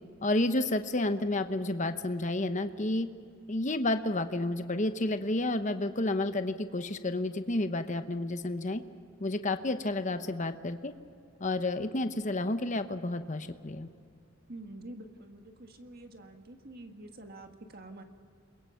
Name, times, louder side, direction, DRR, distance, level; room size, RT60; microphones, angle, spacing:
voice 1, 0.2-3.1 3.5-8.8 9.2-10.9 11.4-13.9, left 2 dB, 35° left, 9 dB, 0.9 m, -30 dB
voice 2, 14.5-18.0, right 1 dB, 45° right, 5 dB, 1.8 m, -47 dB
30.0 x 22.0 x 5.8 m, 2.4 s
head